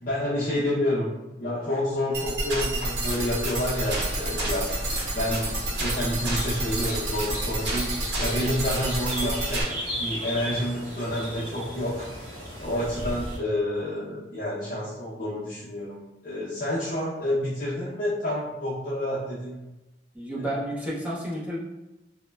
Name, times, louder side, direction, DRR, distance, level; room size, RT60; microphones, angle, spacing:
voice 1, 0.0-9.6 10.0-12.1 12.6-19.6 20.4-20.5, left 1 dB, 50° left, -9 dB, 0.6 m, -29 dB
sound 1, 2.1-9.6, right 1 dB, 75° right, 0.7 m, -29 dB
sound 2, 3.7-13.4, equal, 45° right, 1.0 m, -36 dB
voice 2, 20.1-21.6, equal, 10° right, -7 dB, 0.6 m, -31 dB
2.9 x 2.1 x 2.2 m, 1.0 s
head